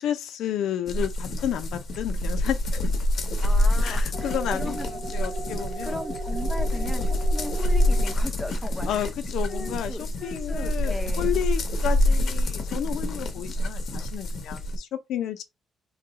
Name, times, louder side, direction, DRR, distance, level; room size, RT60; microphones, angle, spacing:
voice 1, 0.0-2.6 2.8-2.9 3.8-6.0 6.7-6.9 8.9-15.4, left 10 dB, 85° left, 0.5 m, -31 dB
sound 1, 0.9-14.8, left 1 dB, 50° left, 0.7 m, -26 dB
voice 2, 3.4-4.9 5.8-9.1 9.5-11.4, left 1 dB, 5° left, 0.6 m, -37 dB
sound 2, 4.1-8.1, right 4 dB, 65° right, 0.4 m, -38 dB
2.8 x 2.3 x 3.9 m
cardioid pair, 160°, 0 cm